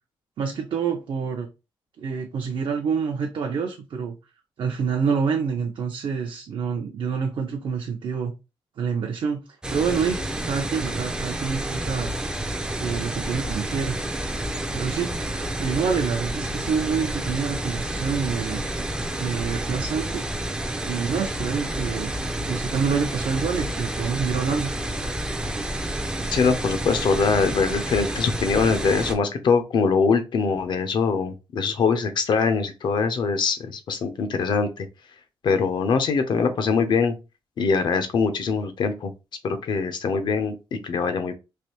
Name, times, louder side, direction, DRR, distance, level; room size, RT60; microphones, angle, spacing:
voice 1, 0.4-1.5 2.0-4.1 4.6-8.3 8.8-9.4 9.7-10.2 10.5-12.1 12.8-14.0 14.5-18.6 19.2-20.2 20.9-22.1 22.4-24.7, right 6 dB, 60° right, 0.5 m, -27 dB
sound 1, 9.6-29.1, right 1 dB, 10° right, 0.4 m, -29 dB
voice 2, 26.3-34.9 35.4-37.1 37.6-39.1 39.4-40.6 40.8-41.3, left 5 dB, 55° left, 0.6 m, -23 dB
3.2 x 2.5 x 2.8 m
wide cardioid pair, 145°, 9 cm